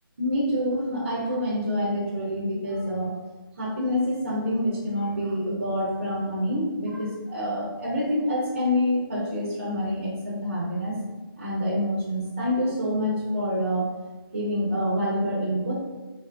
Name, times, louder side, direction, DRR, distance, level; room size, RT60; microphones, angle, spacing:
voice 1, 0.2-3.1 3.6-10.9 11.4-13.9 14.3-15.7, equal, 30° right, -6 dB, 0.7 m, -27 dB
4.6 x 2.7 x 2.4 m, 1.2 s
figure-of-eight pair, 175°, 13 cm